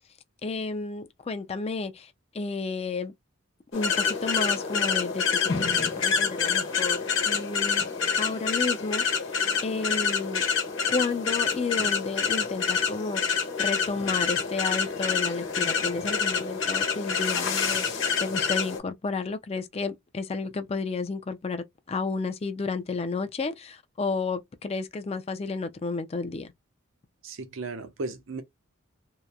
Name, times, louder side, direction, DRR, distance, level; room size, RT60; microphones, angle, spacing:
voice 1, 0.4-3.1 3.7-7.9 8.2-9.3 9.6-10.4 10.9-26.5, left 4 dB, 30° left, 0.4 m, -32 dB
sound 1, 3.7-18.8, left 6 dB, 60° left, 1.1 m, -27 dB
voice 2, 27.2-28.4, right 3 dB, 70° right, 0.6 m, -35 dB
2.8 x 2.0 x 2.3 m
head